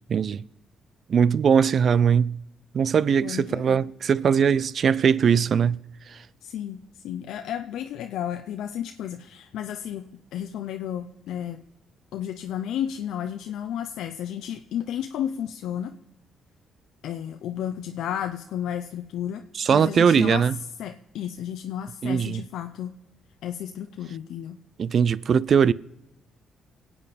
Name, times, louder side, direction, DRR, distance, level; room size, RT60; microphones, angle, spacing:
voice 1, 0.1-0.4 1.1-2.4 2.7-5.8 6.1-6.2 19.6-20.5 22.0-22.4 24.8-25.7, right 7 dB, 55° right, 0.5 m, -20 dB
voice 2, 3.2-3.8 6.4-6.8 7.0-10.1 10.3-11.6 12.1-15.9 17.0-19.4 19.7-20.4 20.8-22.9 23.4-24.6, left 10 dB, 80° left, 0.6 m, -32 dB
25.0 x 8.6 x 4.2 m
cardioid pair, 90°, 0 cm